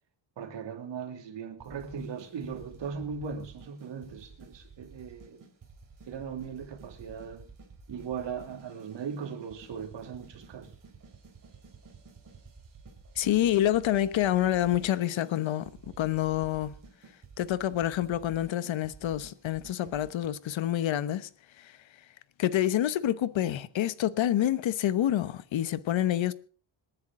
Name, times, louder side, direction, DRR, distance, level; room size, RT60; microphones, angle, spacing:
voice 1, 0.4-5.4 6.1-7.5 7.9-10.7, right 6 dB, 65° right, 3.0 m, -38 dB
sound 1, 1.6-20.3, right 4 dB, 40° right, 4.6 m, -52 dB
voice 2, 13.2-15.7 16.0-16.7 17.4-21.3 21.6-21.7 22.4-26.3, left 12 dB, 75° left, 1.1 m, -27 dB
26.5 x 10.5 x 3.8 m
wide cardioid pair, 165°, 47 cm